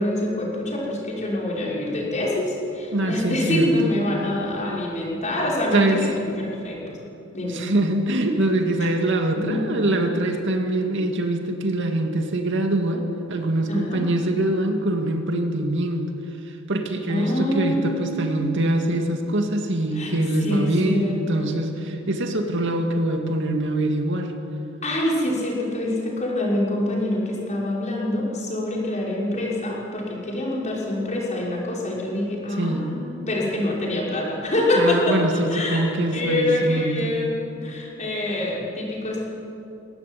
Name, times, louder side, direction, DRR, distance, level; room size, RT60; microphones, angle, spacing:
voice 1, 0.0-7.0 7.3-7.6 9.5-9.6 13.7-14.0 17.1-18.9 19.9-20.1 20.4-21.6 24.8-35.8 36.1-39.3, left 1 dB, 35° left, -4 dB, 5.9 m, -25 dB
voice 2, 2.9-3.9 5.7-6.0 7.5-16.1 16.5-24.3 32.6-32.9 34.8-37.1, right 1 dB, 60° right, 4 dB, 2.3 m, -24 dB
22.0 x 17.5 x 9.4 m, 2.8 s
head